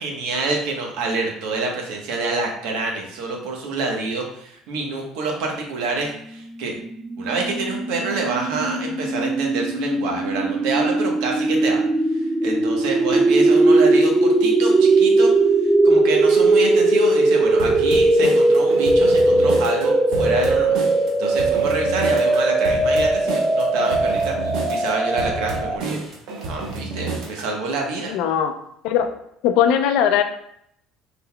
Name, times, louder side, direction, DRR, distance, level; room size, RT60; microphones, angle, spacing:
voice 1, 0.0-6.8 7.2-15.3 15.8-20.8 21.2-24.3 24.7-26.0 26.5-28.1, right 3 dB, 85° right, 1 dB, 1.1 m, -27 dB
sound 1, 6.6-25.8, right 2 dB, 10° right, 0.3 m, -19 dB
sound 2, 17.6-27.5, right 3 dB, 60° right, 1.0 m, -31 dB
voice 2, 28.1-28.5 28.8-29.1 29.4-30.2, left 9 dB, 75° left, 8 dB, 0.5 m, -19 dB
5.6 x 3.9 x 2.3 m, 0.73 s
cardioid pair, 160°, 0 cm